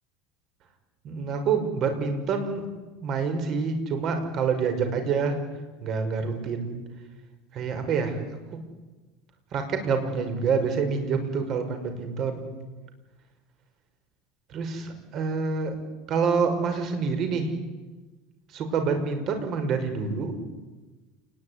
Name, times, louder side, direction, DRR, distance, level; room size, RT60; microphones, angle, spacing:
voice 1, 1.0-2.7 3.0-5.4 5.8-6.8 7.5-8.2 8.5-8.6 9.5-12.6 14.5-15.8 16.1-17.5 18.5-20.3, right 5 dB, 40° right, 7 dB, 5.7 m, -27 dB
28.5 x 20.5 x 9.8 m, 1.2 s
supercardioid pair, 150°, 0 cm